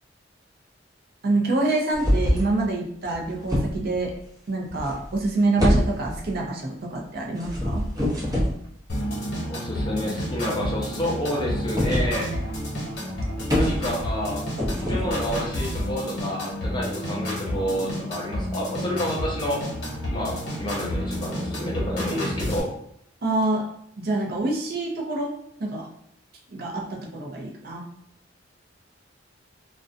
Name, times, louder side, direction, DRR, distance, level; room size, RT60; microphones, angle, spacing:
voice 1, 1.2-4.1 4.5-7.8 23.2-23.7 24.0-25.9 26.5-27.9, right 2 dB, 55° right, 0 dB, 0.5 m, -26 dB
sound 1, 1.9-2.5 3.0-4.1 4.7-5.3 5.6-6.4 7.4-8.6 11.8-12.1 12.5-12.6 12.8-12.9 13.1-14.1 14.6-15.8, equal, 20° right, 0.7 m, -25 dB
sound 2, 8.9-22.6, equal, 60° left, 1.0 m, -30 dB
voice 2, 9.5-12.3 13.5-14.4 14.8-19.6 20.1-22.7, equal, 25° left, -3 dB, 0.5 m, -29 dB
2.4 x 2.2 x 2.4 m, 0.71 s
head